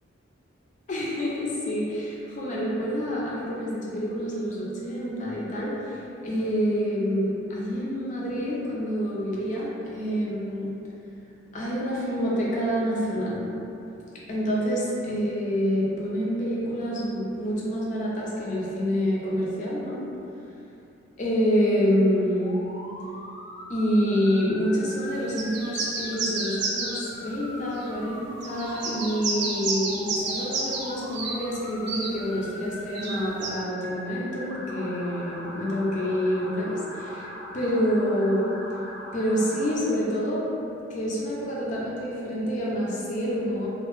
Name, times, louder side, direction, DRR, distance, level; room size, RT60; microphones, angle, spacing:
voice 1, 0.9-6.0 6.2-10.7 11.5-13.4 14.3-20.0 21.2-22.6 23.7-37.3 37.5-38.5 39.1-40.5 40.9-43.7, equal, 40° left, -5 dB, 0.4 m, -27 dB
Motor vehicle (road) / Siren, 22.4-39.7, left 1 dB, 90° left, 0.6 m, -41 dB
sound 1, 25.4-27.0 27.8-27.9 28.4-30.9 31.1-31.4 31.9-32.1 32.9-33.5, right 3 dB, 55° right, 0.3 m, -30 dB
2.2 x 2.0 x 3.0 m, 2.8 s
head